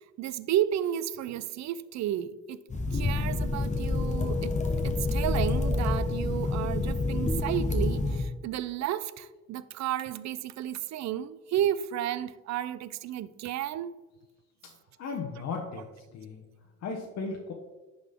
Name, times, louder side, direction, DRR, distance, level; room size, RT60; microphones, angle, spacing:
voice 1, 0.0-2.6 2.9-13.9, right 11 dB, 65° right, 0.5 m, -32 dB
sound 1, 2.7-8.2, left 3 dB, 25° left, 1.1 m, -28 dB
voice 2, 15.0-15.8 16.1-16.4 16.8-17.5, left 4 dB, 60° left, 1.0 m, -35 dB
11.0 x 4.0 x 3.6 m
cardioid pair, 90°, 30 cm